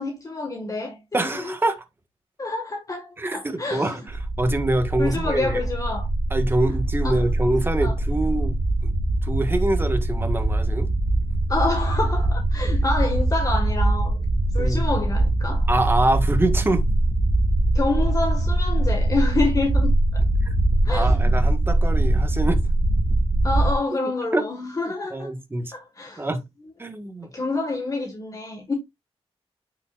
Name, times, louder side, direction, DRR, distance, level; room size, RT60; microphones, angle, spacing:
voice 1, 0.0-1.5 2.4-4.0 5.0-6.1 7.0-7.2 7.8-8.0 11.5-14.2 14.5-15.7 17.7-20.3 20.8-21.3 23.4-25.3 25.7-26.3 27.3-28.7, left 3 dB, 35° left, 1.7 m, -27 dB
voice 2, 1.1-1.8 3.2-5.6 6.3-8.6 8.8-8.9 9.2-10.9 14.6-14.8 15.7-16.8 20.4-20.6 20.9-22.6 24.3-24.5 25.1-25.7 26.2-26.4 26.8-27.3, right 2 dB, 20° right, 1.6 m, -25 dB
sound 1, 4.1-23.7, right 1 dB, 55° right, 1.7 m, -22 dB
9.8 x 5.8 x 2.5 m
wide cardioid pair, 105°, 11 cm